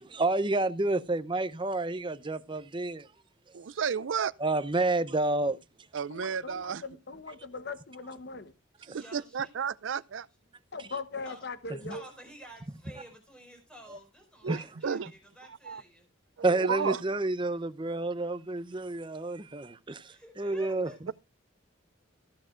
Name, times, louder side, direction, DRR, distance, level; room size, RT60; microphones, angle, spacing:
voice 1, 0.0-3.1 4.4-5.6 11.8-11.9 13.9-14.0 14.5-14.6 16.4-20.9, right 2 dB, 25° right, 0.7 m, -29 dB
voice 2, 3.5-4.3 5.9-6.8 8.9-10.3 14.4-15.1 15.5-15.8 16.4-17.0, right 6 dB, 75° right, 0.5 m, -32 dB
voice 3, 6.1-8.5 10.7-12.0, left 3 dB, 55° left, 1.0 m, -40 dB
voice 4, 8.9-9.5 11.2-11.4 11.8-16.1 20.1-21.1, right 1 dB, 5° left, 5.1 m, -51 dB
15.0 x 12.0 x 2.5 m
head